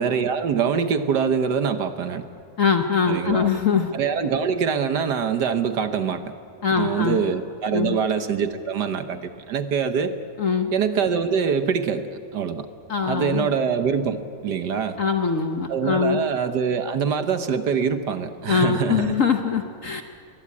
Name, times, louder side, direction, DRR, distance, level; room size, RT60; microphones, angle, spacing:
voice 1, 0.0-2.2 3.1-3.5 3.9-6.3 6.8-10.1 10.7-12.1 12.3-12.7 13.1-15.0 15.7-19.2, right 6 dB, 60° right, 10 dB, 1.4 m, -24 dB
voice 2, 2.6-3.9 6.6-7.2 7.7-8.0 10.4-10.7 12.9-13.5 15.0-16.2 18.5-20.0, left 6 dB, 50° left, 6 dB, 1.0 m, -22 dB
22.0 x 21.5 x 8.5 m, 2.3 s
omnidirectional pair, 2.3 m